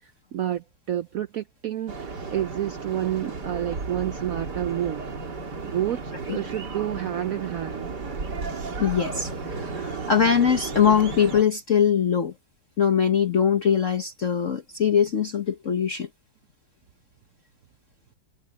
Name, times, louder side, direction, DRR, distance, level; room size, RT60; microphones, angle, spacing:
voice 1, 0.3-5.1 5.6-7.9, right 12 dB, 80° right, 0.7 m, -29 dB
sound 1, 1.9-11.4, right 4 dB, 55° right, 3.2 m, -34 dB
voice 2, 8.8-12.3 12.8-16.1, left 7 dB, 45° left, 1.2 m, -22 dB
omnidirectional pair, 2.2 m